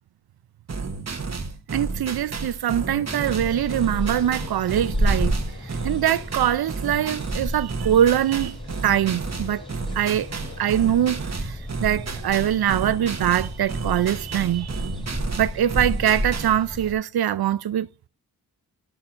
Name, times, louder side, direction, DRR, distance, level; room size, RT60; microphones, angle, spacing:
sound 1, 0.7-16.6, right 4 dB, 45° right, 1.1 m, -32 dB
voice 1, 1.7-5.3 5.6-9.7 9.9-10.3 10.6-14.9 15.4-17.9, right 10 dB, 80° right, 0.5 m, -23 dB
sound 2, 2.8-11.2, left 6 dB, 65° left, 1.0 m, -46 dB
sound 3, 3.1-16.9, right 1 dB, 15° left, 3.1 m, -32 dB
11.0 x 5.8 x 2.5 m
cardioid pair, 45°, 37 cm